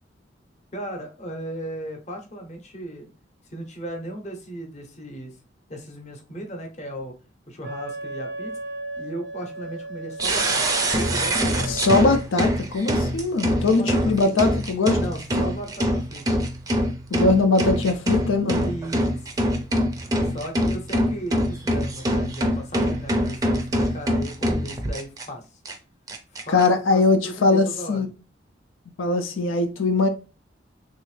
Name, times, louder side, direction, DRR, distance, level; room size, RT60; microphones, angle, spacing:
voice 1, 0.7-3.1 3.5-5.4 5.7-7.1 7.5-8.5 9.0-10.6 10.9-11.9 13.7-14.3 15.0-16.2 18.6-19.3 20.2-25.6 26.3-26.6 26.9-28.1, right 1 dB, 35° left, 0.7 m, -36 dB
Wind instrument woodwind instrument, 7.6-12.1, right 2 dB, 85° right, 0.6 m, -35 dB
sound 1, 10.2-25.3 25.7-25.8 26.1-26.7, equal, 20° right, 0.4 m, -24 dB
voice 2, 11.7-15.0 17.1-18.7 26.5-28.1 29.0-30.1, left 3 dB, 90° left, 0.5 m, -21 dB
3.3 x 2.6 x 3.2 m
head